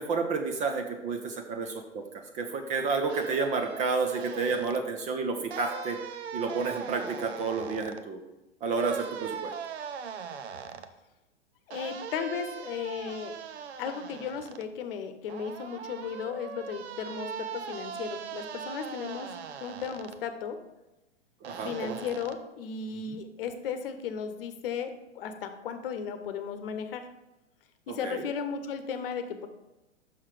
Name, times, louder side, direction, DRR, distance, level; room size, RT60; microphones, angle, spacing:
voice 1, 0.0-2.0 2.3-6.0 6.3-8.2 8.6-9.5 21.4-22.0 23.1-23.2 28.0-28.2, right 4 dB, 20° right, 5 dB, 0.6 m, -30 dB
sound 1, 3.1-4.8 5.5-8.0 8.7-10.9 11.7-14.6 15.3-20.2 21.4-22.3, right 7 dB, 65° right, 0.7 m, -40 dB
voice 2, 11.7-13.3 13.8-19.3 19.6-20.6 21.6-27.1 27.9-29.5, left 6 dB, 50° left, 8 dB, 1.0 m, -35 dB
6.2 x 5.7 x 4.9 m, 0.99 s
hypercardioid pair, 115°, 35 cm